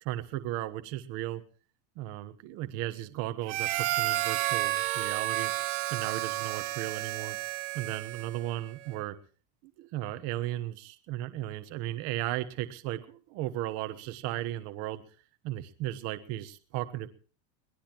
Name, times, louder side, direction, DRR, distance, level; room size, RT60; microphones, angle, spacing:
voice 1, 0.0-1.4 2.0-5.5 5.9-7.4 7.7-9.2 9.8-15.0 15.4-17.1, right 14 dB, 35° right, 9 dB, 1.2 m, -35 dB
Harmonica, 3.5-8.5, right 16 dB, 60° right, 1.7 m, -31 dB
22.5 x 19.0 x 3.0 m, 0.39 s
supercardioid pair, 180°, 40 cm